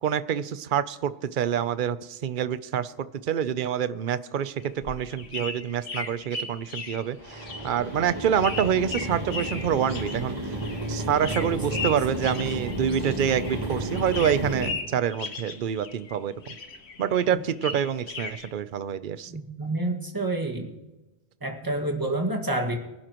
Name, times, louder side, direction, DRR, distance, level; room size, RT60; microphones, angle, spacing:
voice 1, 0.0-10.4 10.9-16.3 17.0-19.3, right 8 dB, 55° right, 14 dB, 0.8 m, -27 dB
sound 1, 4.6-13.7 13.9-16.2 16.4-18.5, left 4 dB, 70° left, 1.5 m, -37 dB
sound 2, 7.2-14.7, right 1 dB, 35° right, 6.2 m, -32 dB
voice 2, 11.4-11.9 19.3-20.7 21.4-22.8, right 2 dB, 20° right, 2 dB, 1.9 m, -29 dB
24.5 x 11.5 x 3.0 m, 1.0 s
omnidirectional pair, 1.1 m